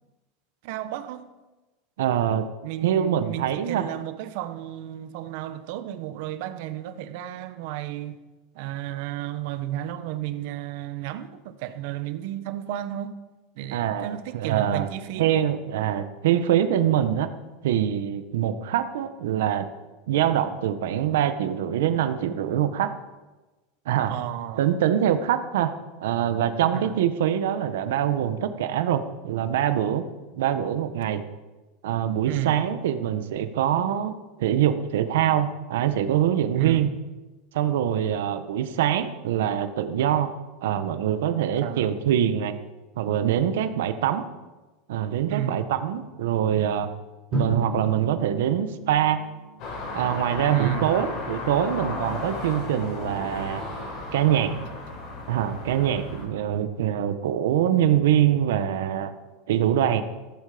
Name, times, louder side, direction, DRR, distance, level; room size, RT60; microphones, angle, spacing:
voice 1, 0.6-1.3 2.6-8.2 8.5-13.1 13.6-15.3 24.1-24.8 26.7-27.0 32.2-32.6 36.5-37.0 41.6-41.9 45.3-45.6 50.5-50.9, right 12 dB, 55° right, 1.2 m, -32 dB
voice 2, 2.0-2.5 2.8-3.9 13.7-14.9 15.2-17.3 17.6-19.7 20.1-22.9 23.8-24.1 24.6-25.7 26.0-30.0 30.4-31.2 31.8-36.9 37.5-40.3 40.6-42.6 43.0-44.2 44.9-46.9 47.3-49.2 49.9-53.6 54.1-54.6 55.3-59.1 59.5-60.0, right 10 dB, 85° right, 1.4 m, -24 dB
Drum, 47.3-50.0, right 2 dB, ahead, 3.0 m, -33 dB
sound 1, 49.6-56.3, left 3 dB, 40° left, 6.2 m, -34 dB
15.5 x 14.5 x 5.2 m
supercardioid pair, 165°, 0 cm